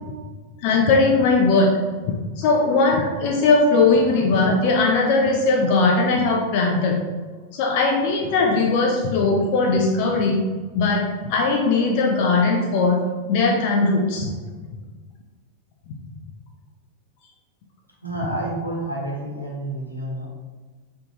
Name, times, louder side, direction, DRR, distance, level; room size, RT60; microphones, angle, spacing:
voice 1, 0.6-1.7 2.4-7.0 7.5-10.4 10.7-13.0 13.3-14.3, left 3 dB, 45° left, 1 dB, 0.5 m, -19 dB
voice 2, 18.0-20.3, right 1 dB, 90° left, -4 dB, 1.2 m, -29 dB
4.9 x 3.5 x 2.9 m, 1.4 s
figure-of-eight pair, 90°, 0 cm